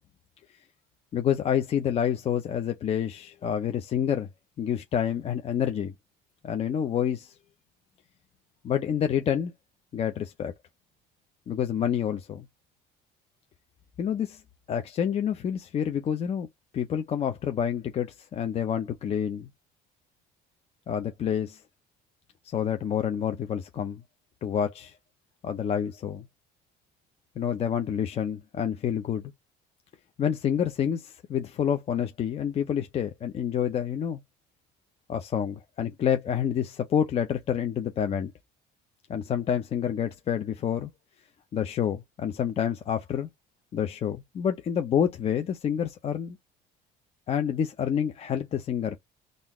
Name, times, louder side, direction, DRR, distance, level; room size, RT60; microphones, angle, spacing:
voice 1, 1.1-4.3 4.6-5.9 6.4-7.3 8.6-9.5 9.9-10.5 11.5-12.5 14.0-14.4 14.7-16.5 16.7-19.5 20.9-21.6 22.4-24.0 24.4-25.0 25.4-26.3 27.4-29.3 30.2-34.2 35.1-38.3 39.1-40.9 41.5-43.3 43.7-46.4 47.3-49.0, left 8 dB, 35° left, 0.5 m, -28 dB
3.8 x 2.5 x 3.0 m
cardioid pair, 145°, 18 cm